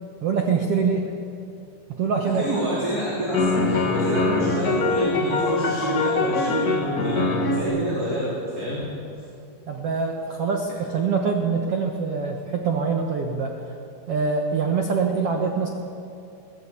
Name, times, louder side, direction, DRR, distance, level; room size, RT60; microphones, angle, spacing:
voice 1, 0.2-1.1 2.0-2.7 9.7-13.6 14.1-15.7, right 5 dB, 60° right, 2 dB, 1.6 m, -24 dB
voice 2, 2.3-8.9, right 1 dB, 25° right, -6 dB, 3.9 m, -27 dB
sound 1, 2.6-2.7 3.3-7.6, left 3 dB, 70° left, 0.8 m, -23 dB
22.5 x 16.5 x 8.4 m, 2.7 s
omnidirectional pair, 4.4 m